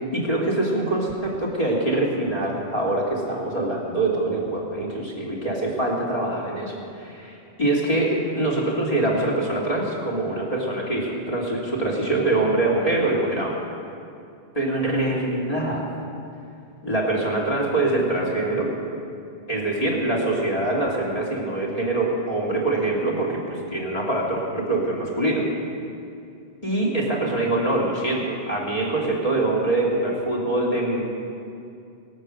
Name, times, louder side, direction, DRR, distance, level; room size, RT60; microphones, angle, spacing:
voice 1, 0.1-13.5 14.5-15.8 16.8-18.7 19.5-25.5 26.6-31.0, right 2 dB, 30° left, -4 dB, 3.0 m, -24 dB
23.5 x 8.1 x 6.6 m, 2.5 s
omnidirectional pair, 1.2 m